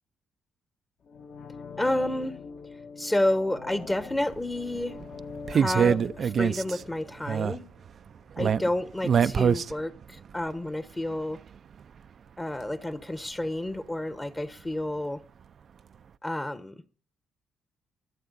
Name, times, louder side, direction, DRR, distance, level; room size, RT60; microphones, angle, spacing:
sound 1, 1.0-7.9 8.2-8.3, left 5 dB, 65° left, 2.1 m, -44 dB
voice 1, 1.8-2.4 3.0-5.0 5.5-7.6 8.4-11.4 12.4-15.2 16.2-16.8, left 1 dB, 15° left, 1.1 m, -30 dB
sound 2, 3.8-3.9 4.3-4.4 4.7-6.9 7.2-7.6 7.8-7.9 8.3-9.7 10.0-10.4 11.1-11.2, right 7 dB, 55° right, 0.5 m, -24 dB
23.5 x 7.9 x 4.0 m
cardioid pair, 90°, 0 cm